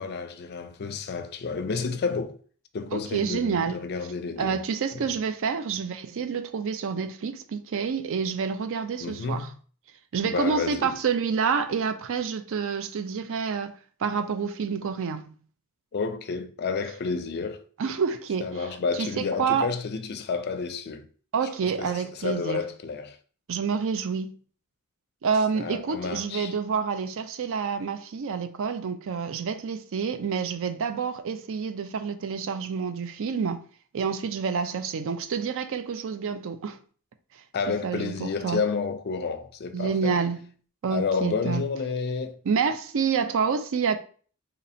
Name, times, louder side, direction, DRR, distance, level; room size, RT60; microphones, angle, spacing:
voice 1, 0.0-2.4 2.7-4.6 4.9-5.1 9.0-9.5 10.2-10.9 15.9-17.6 18.4-21.1 21.6-23.2 25.5-26.6 37.5-40.2 40.9-42.4, left 5 dB, 45° left, 0.4 m, -30 dB
voice 2, 2.9-3.8 4.4-9.5 10.1-13.7 14.0-15.3 17.8-18.7 19.0-19.7 21.3-22.6 23.5-24.3 25.2-33.6 33.9-36.8 37.7-38.6 39.7-40.4 40.8-41.6 42.5-44.0, right 6 dB, 60° right, 0.4 m, -28 dB
2.9 x 2.7 x 4.2 m
head